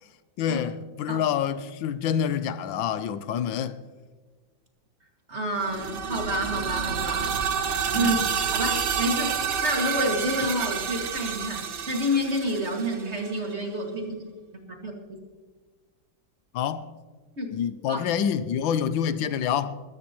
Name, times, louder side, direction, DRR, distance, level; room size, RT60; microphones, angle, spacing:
voice 1, 0.4-3.8 7.9-8.2 16.5-16.9 17.5-19.8, left 8 dB, 85° left, 1.5 m, -27 dB
voice 2, 5.3-7.3 7.9-8.2 8.5-9.4 9.6-14.3 14.7-15.2 17.4-17.5 17.9-18.0, equal, 35° right, 2.3 m, -29 dB
sound 1, 5.6-13.4, right 7 dB, 80° right, 1.9 m, -29 dB
21.0 x 13.5 x 3.0 m
omnidirectional pair, 2.1 m